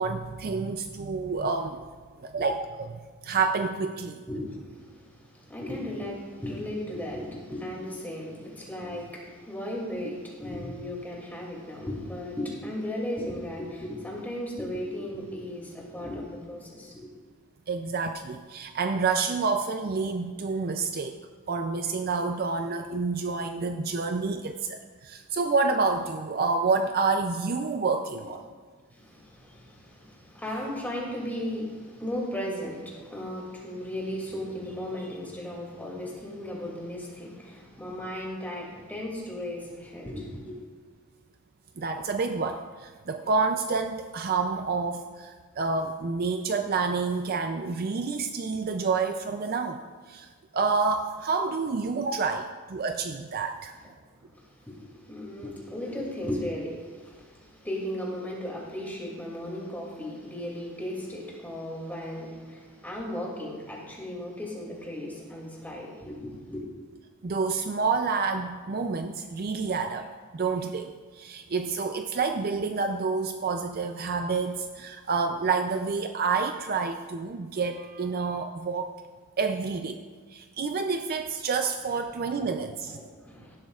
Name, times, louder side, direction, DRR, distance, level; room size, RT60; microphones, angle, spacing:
voice 1, 0.0-1.8 2.2-4.2 17.7-21.2 21.5-28.4 41.8-49.8 50.1-50.3 50.5-53.7 67.2-70.1 70.3-78.9 79.4-80.0 80.3-83.0, right 4 dB, 40° right, 6 dB, 0.4 m, -28 dB
voice 2, 4.3-17.1 28.2-28.3 28.9-40.6 54.3-66.6 82.9-83.6, left 1 dB, 10° left, -3 dB, 2.5 m, -36 dB
16.5 x 12.0 x 2.4 m, 1.5 s
head